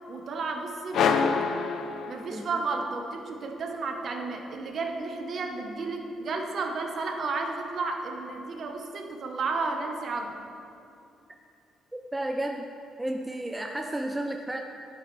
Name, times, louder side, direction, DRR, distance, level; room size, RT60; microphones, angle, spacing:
voice 1, 0.1-1.3 2.1-10.3, right 3 dB, 40° right, 3 dB, 0.9 m, -32 dB
sound 1, 0.9-2.7, left 6 dB, 55° left, 0.4 m, -26 dB
voice 2, 2.3-2.6 11.9-12.7 13.0-14.6, right 1 dB, 5° right, 3 dB, 0.3 m, -32 dB
12.0 x 7.8 x 3.2 m, 2.7 s
cardioid pair, 170°, 0 cm